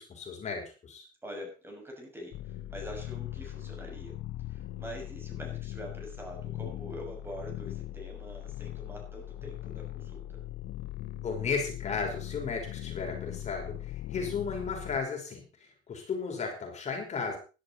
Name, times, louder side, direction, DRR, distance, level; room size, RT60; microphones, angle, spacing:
voice 1, 0.0-1.0 11.2-17.4, left 5 dB, 40° left, 2 dB, 5.3 m, -35 dB
voice 2, 1.2-4.2 4.5-10.4, equal, 15° right, 1 dB, 6.8 m, -44 dB
sound 1, 2.3-15.0, left 14 dB, 75° left, 0.9 m, -40 dB
16.5 x 12.0 x 4.3 m, 0.34 s
cardioid pair, 110°, 17 cm